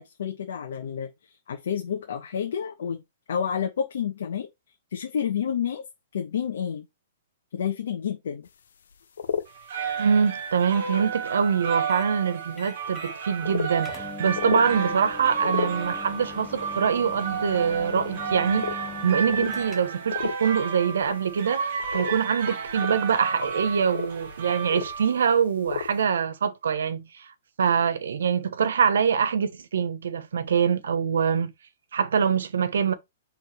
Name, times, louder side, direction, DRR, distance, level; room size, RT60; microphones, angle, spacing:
voice 1, 0.0-3.0 3.3-4.5 4.9-5.8 6.1-6.9 7.5-8.5, left 8 dB, 60° left, 1.3 m, -29 dB
sound 1, 8.4-8.5 8.9-9.5 10.0-10.2 10.8-10.9 11.7-11.8 12.4-12.5 13.0-13.1 13.4-13.7 14.3-14.7 15.2-16.2 16.6-17.2 17.7-18.1 18.4-18.8 19.3-19.7 20.0-20.7 21.0-22.2 22.5-25.4 25.6-26.0, left 7 dB, 75° left, 0.8 m, -33 dB
sound 2, 9.5-25.4, right 6 dB, 45° right, 1.3 m, -32 dB
voice 2, 10.0-27.3 27.6-31.5 31.9-32.9, right 7 dB, 80° right, 1.2 m, -24 dB
sound 3, 11.9-12.1 12.6-13.2 13.5-13.6 13.8-20.1, left 7 dB, 10° left, 0.7 m, -42 dB
6.0 x 3.8 x 4.5 m
hypercardioid pair, 180°, 0 cm